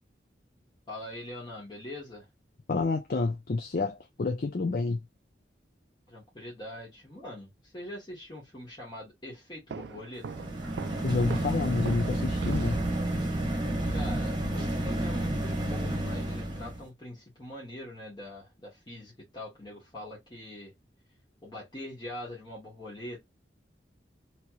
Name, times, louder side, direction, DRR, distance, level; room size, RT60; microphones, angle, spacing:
voice 1, 0.9-2.3 6.1-10.5 13.9-20.7 21.4-23.2, left 1 dB, 25° left, 1.1 m, -43 dB
voice 2, 2.7-5.0 11.0-13.0, left 3 dB, 50° left, 0.5 m, -29 dB
Walk footsteps, 9.7-13.0, right 5 dB, 70° right, 0.4 m, -40 dB
sound 1, 10.2-16.8, right 1 dB, 25° right, 1.1 m, -30 dB
3.0 x 2.9 x 2.3 m
head